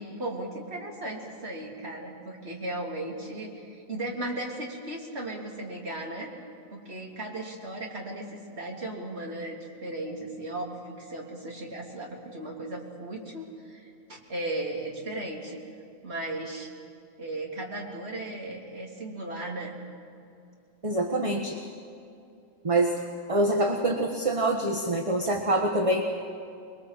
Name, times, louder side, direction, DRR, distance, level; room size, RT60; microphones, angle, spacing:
voice 1, 0.0-6.3 6.7-15.6 16.0-16.7 17.2-19.8 25.3-25.4, right 1 dB, 50° right, -2 dB, 3.7 m, -36 dB
voice 2, 20.8-21.6 22.6-23.0 23.3-26.0, right 1 dB, 25° right, 2 dB, 1.5 m, -25 dB
26.0 x 22.5 x 7.6 m, 2.6 s
omnidirectional pair, 1.4 m